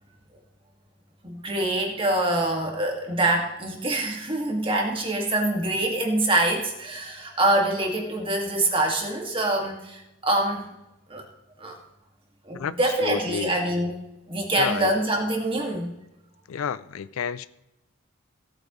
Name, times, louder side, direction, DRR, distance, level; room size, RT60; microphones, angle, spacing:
voice 1, 1.2-10.7 11.1-11.2 11.6-11.8 12.5-14.0 14.3-15.9, right 1 dB, 25° right, 2.0 m, -25 dB
voice 2, 12.5-13.5 14.6-14.9 16.5-17.5, left 7 dB, 75° left, 0.4 m, -31 dB
17.5 x 8.9 x 3.1 m
head